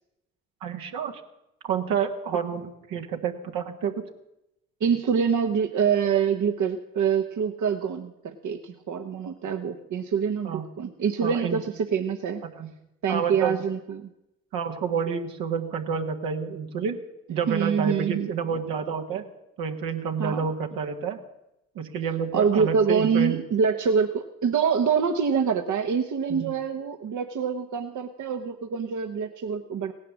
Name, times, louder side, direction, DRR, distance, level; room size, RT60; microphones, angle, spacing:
voice 1, 0.6-1.2 1.6-4.1 10.4-10.6 11.2-11.6 12.4-12.7 13.1-13.6 14.5-17.0 17.3-19.2 19.6-21.2 21.7-23.4 26.3-26.5, right 6 dB, 75° right, 4 dB, 1.7 m, -29 dB
voice 2, 4.8-12.4 13.0-14.1 17.5-18.3 20.2-20.4 22.3-29.9, right 6 dB, 55° right, 6 dB, 1.2 m, -25 dB
17.0 x 10.0 x 7.2 m, 0.88 s
hypercardioid pair, 50°, 35 cm